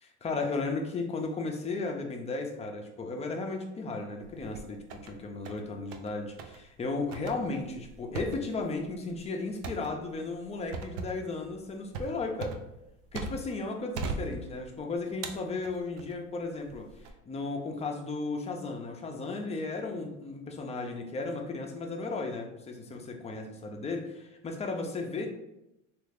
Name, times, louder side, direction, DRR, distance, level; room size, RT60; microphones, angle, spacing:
voice 1, 0.0-12.6 13.1-25.3, left 3 dB, 20° left, 2 dB, 0.4 m, -35 dB
sound 1, 4.2-5.1 5.4-6.1 6.4-6.6 7.1-13.6 13.9-14.8 15.2-16.2 16.7-17.1, right 4 dB, 80° right, 0.6 m, -39 dB
3.0 x 2.4 x 3.4 m, 0.88 s
supercardioid pair, 110°, 38 cm